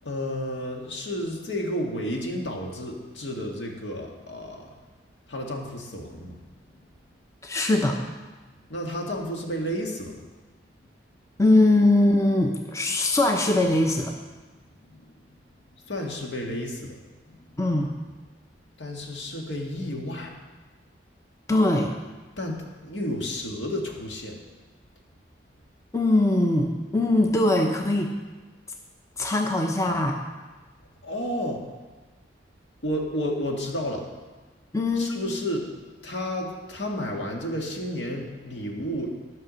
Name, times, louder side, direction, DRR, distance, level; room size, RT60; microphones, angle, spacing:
voice 1, 0.0-4.7 5.3-6.4 6.7-6.8 8.7-10.2 14.9-15.1 15.9-17.0 17.2-17.5 18.8-20.4 22.4-24.4 31.0-31.6 32.8-34.1 34.9-35.7 36.0-39.1, equal, 80° left, 0 dB, 1.8 m, -31 dB
voice 2, 7.4-8.0 11.4-14.1 17.6-17.9 21.5-21.9 25.9-28.1 29.2-30.2 34.7-35.1, left 2 dB, 15° left, 2 dB, 0.7 m, -21 dB
12.5 x 5.9 x 6.3 m, 1.3 s
head